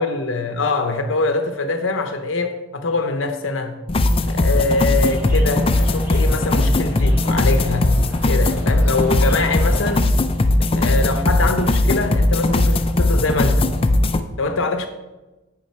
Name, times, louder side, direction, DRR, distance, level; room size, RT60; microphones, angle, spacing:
voice 1, 0.0-3.8 4.2-7.9 8.3-10.1 10.8-13.7 14.4-14.9, left 3 dB, 70° left, 7 dB, 0.8 m, -23 dB
sound 1, 3.9-14.2, left 2 dB, 30° left, 0.4 m, -18 dB
sound 2, 4.9-9.9, equal, 10° right, 1.1 m, -38 dB
9.3 x 4.9 x 4.3 m, 1.1 s
head